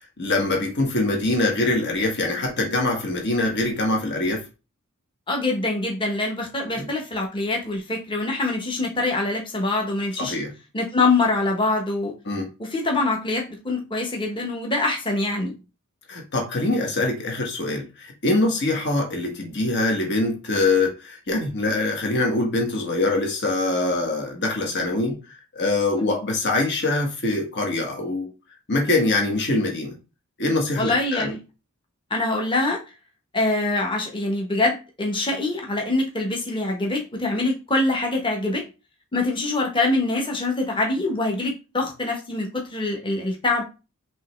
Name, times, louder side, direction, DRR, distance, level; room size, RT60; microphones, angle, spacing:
voice 1, 0.2-4.4 6.7-6.9 10.2-10.5 12.3-12.5 16.1-25.2 25.5-28.3 28.7-30.0 30.4-31.3, left 2 dB, 50° left, 1.4 m, -23 dB
voice 2, 5.3-10.4 10.7-12.1 12.6-15.5 30.8-31.4 32.1-32.8 33.3-38.6 39.1-43.6, left 2 dB, 20° left, 1.1 m, -24 dB
5.4 x 3.1 x 3.2 m
head